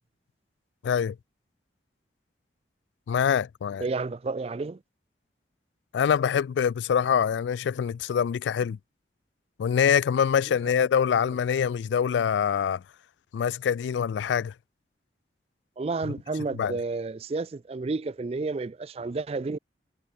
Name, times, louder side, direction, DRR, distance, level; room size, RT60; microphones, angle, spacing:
voice 1, 0.8-1.2 3.1-3.8 5.9-8.8 9.6-12.8 13.3-14.5 16.6-16.8, left 7 dB, 80° left, 0.3 m, -24 dB
voice 2, 3.8-4.8 10.5-10.6 15.8-19.6, right 3 dB, 35° right, 0.4 m, -31 dB
head